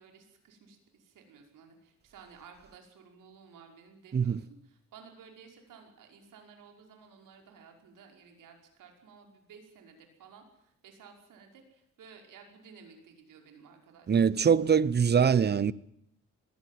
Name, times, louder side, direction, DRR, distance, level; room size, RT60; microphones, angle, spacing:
voice 1, 0.0-14.6, right 6 dB, 85° right, 5.5 m, -55 dB
voice 2, 14.1-15.7, right 7 dB, 30° right, 0.9 m, -23 dB
21.5 x 16.0 x 9.4 m
cardioid pair, 110°, 31 cm